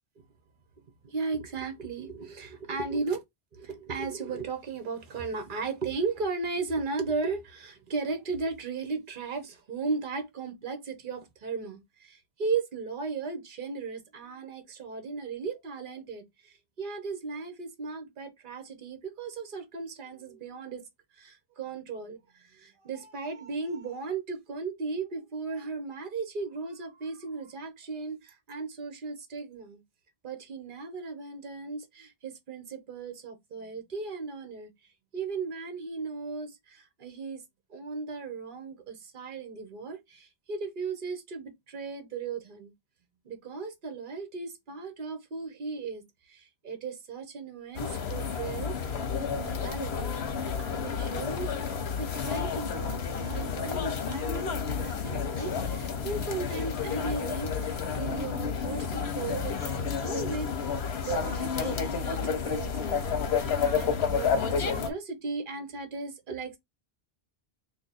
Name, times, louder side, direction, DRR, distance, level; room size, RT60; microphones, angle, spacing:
voice 1, 1.0-3.2 3.5-20.8 21.1-29.8 30.2-37.4 37.7-42.7 43.2-66.6, right 4 dB, 55° right, 1.0 m, -36 dB
sound 1, 47.7-64.9, left 6 dB, 85° left, 1.0 m, -30 dB
2.8 x 2.6 x 4.0 m
omnidirectional pair, 1.0 m